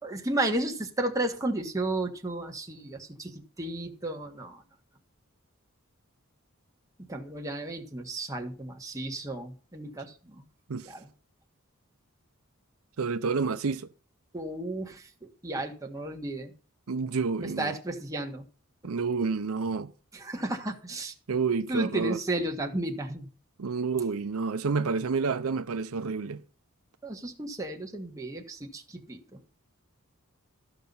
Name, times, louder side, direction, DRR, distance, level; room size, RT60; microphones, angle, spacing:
voice 1, 0.0-4.6 7.1-10.4 10.8-11.1 14.3-16.5 17.4-18.4 18.8-18.9 20.1-21.1 21.7-23.3 27.0-29.4, right 2 dB, 15° right, 1.6 m, -33 dB
voice 2, 13.0-13.9 16.9-17.7 18.8-19.9 21.3-22.2 23.6-26.4, right 5 dB, 85° right, 0.6 m, -29 dB
14.0 x 5.7 x 5.5 m
head